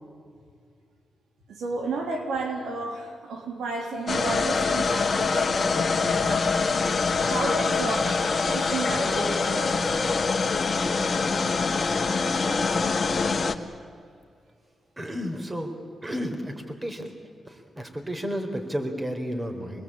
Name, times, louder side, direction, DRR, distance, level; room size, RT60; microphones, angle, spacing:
voice 1, 1.5-9.8, right 2 dB, 90° right, 3 dB, 3.1 m, -32 dB
sound 1, 4.1-13.5, left 4 dB, 45° left, 1.6 m, -24 dB
voice 2, 15.0-15.7 16.0-17.1 17.5-19.8, equal, 25° right, 5 dB, 4.3 m, -32 dB
25.5 x 20.5 x 8.8 m, 2.3 s
cardioid pair, 60°, 0 cm